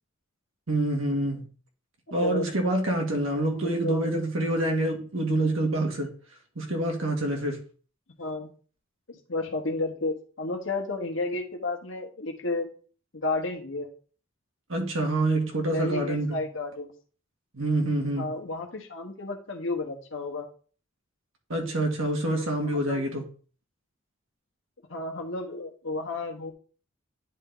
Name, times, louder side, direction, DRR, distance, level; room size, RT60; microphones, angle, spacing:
voice 1, 0.7-1.5 2.1-6.1 6.6-7.6 14.7-16.4 17.5-18.3 21.5-23.2, right 1 dB, 75° right, 2 dB, 1.7 m, -26 dB
voice 2, 2.1-2.5 3.5-4.1 8.2-8.5 9.1-12.7 13.1-13.9 15.6-16.9 18.2-20.5 22.7-23.0 24.9-26.5, left 2 dB, 65° left, 3 dB, 1.3 m, -32 dB
9.8 x 3.4 x 3.9 m, 0.40 s
head